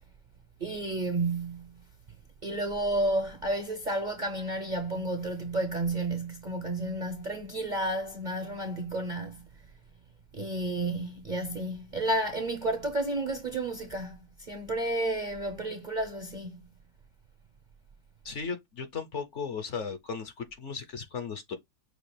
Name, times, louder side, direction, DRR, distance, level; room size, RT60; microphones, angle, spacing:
voice 1, 0.6-1.8 2.4-9.5 10.3-16.6, right 1 dB, 40° right, 0.7 m, -31 dB
voice 2, 18.2-21.6, left 5 dB, 55° left, 1.0 m, -36 dB
6.5 x 2.4 x 3.2 m
omnidirectional pair, 1.7 m